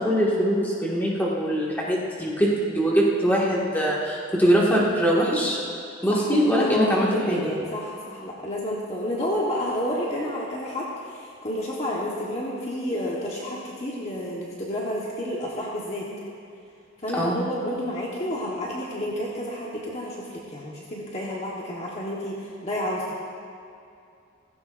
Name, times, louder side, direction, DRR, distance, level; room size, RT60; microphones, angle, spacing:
voice 1, 0.0-5.6 6.0-7.5 17.2-17.4, equal, 10° left, -6 dB, 1.9 m, -22 dB
voice 2, 6.1-16.1 17.0-23.2, equal, 30° left, -5 dB, 1.3 m, -30 dB
16.0 x 16.0 x 2.6 m, 2.5 s
head